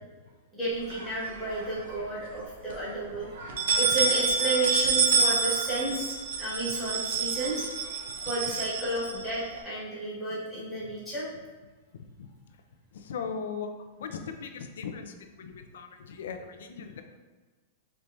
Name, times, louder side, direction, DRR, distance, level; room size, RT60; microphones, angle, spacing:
voice 1, 0.5-6.1 6.4-7.7 8.2-11.3, right 2 dB, 5° right, -12 dB, 1.4 m, -32 dB
sound 1, 0.9-1.8 2.2-2.3 2.7-2.8 3.4-9.6, right 5 dB, 70° right, 0.6 m, -28 dB
voice 2, 13.1-13.7 14.0-15.1 15.4-17.0, left 6 dB, 85° left, 7 dB, 0.4 m, -38 dB
4.4 x 3.3 x 2.6 m, 1.3 s
supercardioid pair, 175°, 0 cm